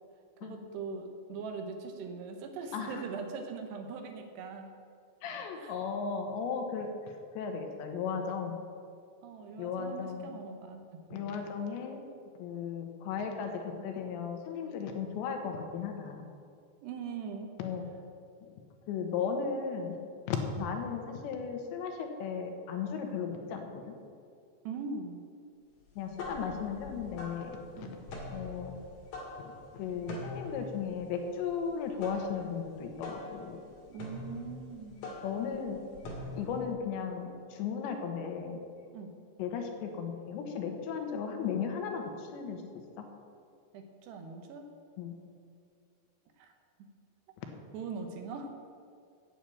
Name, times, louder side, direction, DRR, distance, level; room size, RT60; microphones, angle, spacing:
voice 1, 0.4-4.7 5.5-5.7 9.2-11.3 16.8-17.5 24.6-25.2 27.8-28.0 33.9-35.1 38.9-39.1 43.7-44.7 46.4-46.5 46.8-46.9 47.7-48.5, right 5 dB, 75° right, 5 dB, 3.0 m, -41 dB
voice 2, 5.2-6.9 7.4-8.6 9.6-10.3 11.1-12.0 12.4-16.3 17.6-17.8 18.9-20.0 20.3-24.0 26.0-28.0 28.3-28.7 29.7-33.6 35.2-35.8 36.3-38.6 39.4-42.6 43.0-43.1 45.0-45.1, left 6 dB, 90° left, 4 dB, 3.4 m, -36 dB
sound 1, 25.9-36.7, left 2 dB, 60° left, 3.3 m, -44 dB
9.0 x 7.7 x 8.6 m, 2.3 s
omnidirectional pair, 5.0 m